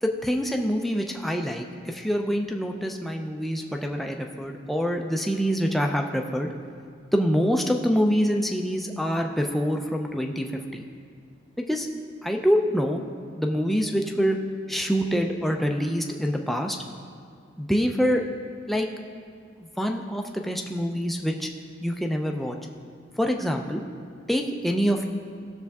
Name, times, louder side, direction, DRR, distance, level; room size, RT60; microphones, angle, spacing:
voice 1, 0.0-6.5 7.1-10.5 10.7-10.9 11.6-11.9 12.2-13.0 13.4-14.4 14.7-16.8 17.6-18.2 18.7-18.9 19.6-21.5 21.8-22.6 23.2-23.8 24.3-25.0, equal, ahead, 2 dB, 0.5 m, -25 dB
17.0 x 6.8 x 3.5 m, 2.2 s
head